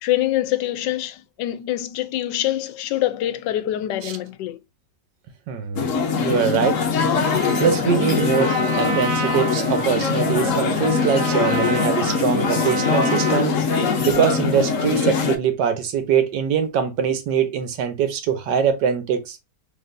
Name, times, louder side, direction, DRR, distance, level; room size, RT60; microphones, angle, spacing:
voice 1, 0.0-4.6, left 14 dB, 80° left, 1.2 m, -25 dB
voice 2, 5.5-5.8 6.2-6.8 7.1-13.6 14.0-19.4, right 7 dB, 80° right, 1.4 m, -22 dB
sound 1, 5.8-15.4, left 5 dB, 60° left, 0.9 m, -22 dB
Trumpet, 7.1-14.2, right 2 dB, 40° right, 0.8 m, -30 dB
4.0 x 3.3 x 2.5 m
omnidirectional pair, 1.9 m